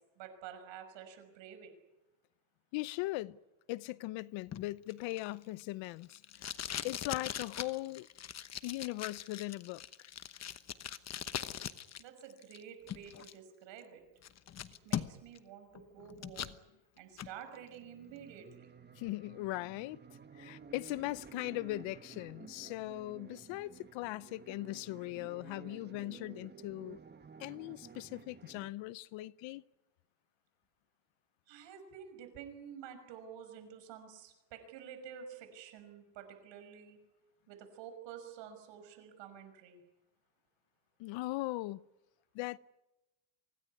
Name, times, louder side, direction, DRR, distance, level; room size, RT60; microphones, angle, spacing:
voice 1, 0.2-1.7 12.0-14.0 14.8-16.5 17.0-18.7 31.5-37.0 37.5-39.8, right 8 dB, 75° right, 5.9 m, -50 dB
voice 2, 2.7-3.4 3.7-6.5 6.8-8.1 8.6-9.8 18.9-20.0 20.3-27.0 27.4-29.6 41.0-41.8 42.3-42.6, left 19 dB, 80° left, 0.8 m, -39 dB
Packing tape duct tape, 4.5-12.0 12.3-13.3 13.8-13.9 14.2-15.4 15.7-16.6 17.0-17.3, left 9 dB, 35° left, 1.1 m, -41 dB
sound 1, 17.4-28.7, right 6 dB, 20° right, 1.3 m, -54 dB
25.0 x 17.5 x 9.7 m
cardioid pair, 135°, 44 cm